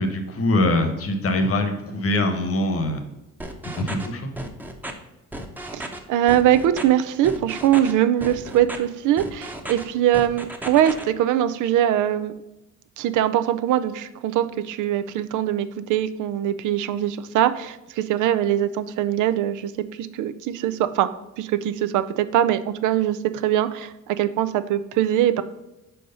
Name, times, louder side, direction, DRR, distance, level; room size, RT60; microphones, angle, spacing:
voice 1, 0.0-3.0 3.7-4.3, left 1 dB, 50° left, 6 dB, 1.2 m, -23 dB
sound 1, 3.4-4.1 4.4-4.9 5.3-6.0 6.3-6.8 7.2-7.9 8.2-8.8 9.2-9.8 10.1-11.0, right 1 dB, 5° right, 0.8 m, -34 dB
voice 2, 5.7-12.3 13.0-19.7 20.0-21.1 21.4-25.4, right 11 dB, 85° right, 12 dB, 0.5 m, -22 dB
4.8 x 4.6 x 5.3 m, 0.96 s
cardioid pair, 90°, 30 cm